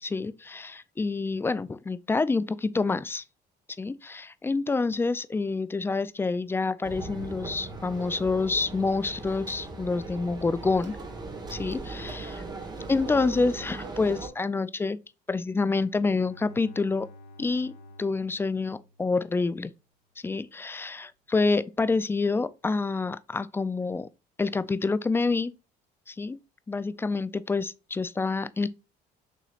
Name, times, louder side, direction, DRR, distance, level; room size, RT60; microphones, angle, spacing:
voice 1, 0.0-3.2 3.8-11.0 11.5-12.4 12.9-15.0 15.3-17.1 17.4-19.7 20.2-24.1 24.4-25.5 26.1-26.4 26.7-28.7, left 3 dB, 15° left, 0.3 m, -27 dB
sound 1, 6.8-14.3, right 3 dB, 25° right, 1.2 m, -39 dB
Bowed string instrument, 15.8-19.5, left 1 dB, 80° left, 1.2 m, -51 dB
6.8 x 3.1 x 2.4 m
cardioid pair, 110°, 17 cm